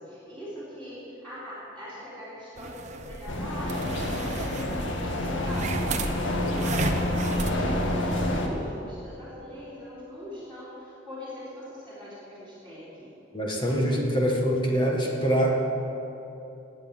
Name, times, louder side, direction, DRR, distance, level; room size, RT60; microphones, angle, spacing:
voice 1, 0.0-13.1, equal, 5° left, -13 dB, 3.6 m, -41 dB
sound 1, 2.6-7.6, right 3 dB, 35° right, 0.8 m, -34 dB
sound 2, 3.3-8.5, left 1 dB, 80° left, 1.8 m, -28 dB
voice 2, 13.3-15.5, equal, 25° left, -1 dB, 1.7 m, -24 dB
19.5 x 8.3 x 7.3 m, 2.9 s
head